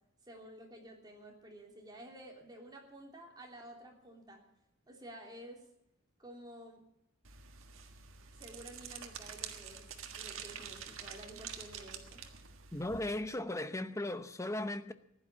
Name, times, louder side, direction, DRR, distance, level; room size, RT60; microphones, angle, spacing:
voice 1, 0.3-4.4 4.9-5.6 6.2-6.8 8.4-9.9 10.1-12.2, right 1 dB, 20° right, 3.2 m, -51 dB
sound 1, 7.2-13.2, right 7 dB, 75° right, 1.6 m, -47 dB
voice 2, 12.7-14.9, left 1 dB, 15° left, 0.8 m, -37 dB
15.5 x 11.0 x 7.4 m
head